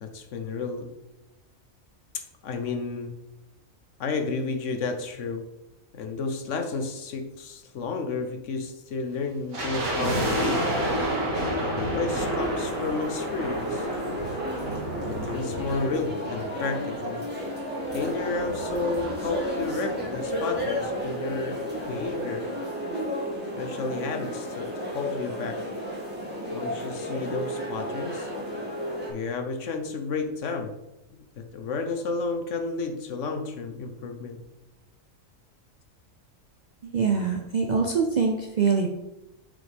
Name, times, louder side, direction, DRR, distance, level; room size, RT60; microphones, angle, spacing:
voice 1, 0.0-0.9 2.1-3.2 4.0-5.5 5.9-10.7 11.5-13.9 15.1-17.2 17.9-22.5 23.6-25.7 26.5-28.3 29.1-30.8 31.4-34.4, left 4 dB, 65° left, 6 dB, 1.1 m, -32 dB
sound 1, 9.5-16.8 17.1-17.2 17.8-19.7 19.9-20.0 20.2-20.5 21.0-21.1, right 1 dB, 85° right, 2.1 m, -30 dB
sound 2, 12.2-29.1, equal, 5° right, 1.9 m, -32 dB
voice 2, 36.8-38.9, right 5 dB, 50° right, 1 dB, 0.5 m, -24 dB
7.3 x 5.2 x 3.4 m, 0.94 s
omnidirectional pair, 1.4 m